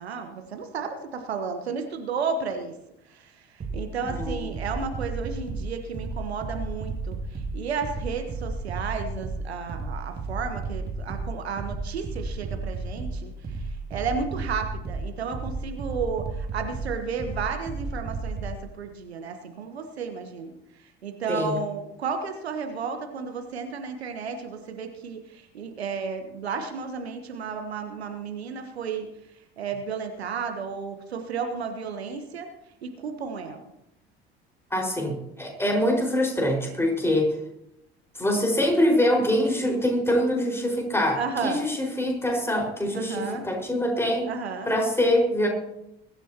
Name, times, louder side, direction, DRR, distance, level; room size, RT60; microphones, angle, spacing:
voice 1, 0.0-2.7 3.1-3.3 3.7-13.3 13.9-20.5 21.0-29.1 29.6-32.5 32.8-33.6 41.2-41.6 42.9-43.4 44.3-44.7, right 5 dB, 80° right, 6 dB, 1.3 m, -33 dB
sound 1, 3.6-18.6, right 3 dB, 30° right, 2.6 m, -33 dB
voice 2, 4.1-4.5 21.3-21.6 34.7-37.3 38.1-44.3 44.6-45.5, left 1 dB, 10° left, 0 dB, 5.0 m, -24 dB
22.5 x 12.5 x 2.9 m, 0.84 s
figure-of-eight pair, 60°, 32 cm